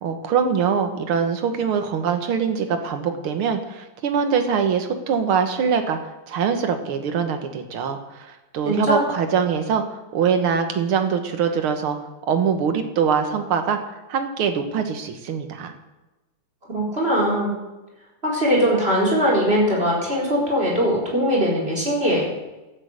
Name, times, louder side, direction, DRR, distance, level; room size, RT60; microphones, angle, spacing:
voice 1, 0.0-6.0 6.3-12.0 12.3-13.8 14.1-15.7, right 6 dB, 70° right, 7 dB, 2.2 m, -23 dB
voice 2, 8.6-9.0 16.7-17.6 18.2-22.3, equal, 25° right, -2 dB, 4.4 m, -21 dB
12.0 x 8.8 x 8.2 m, 1.1 s
omnidirectional pair, 2.4 m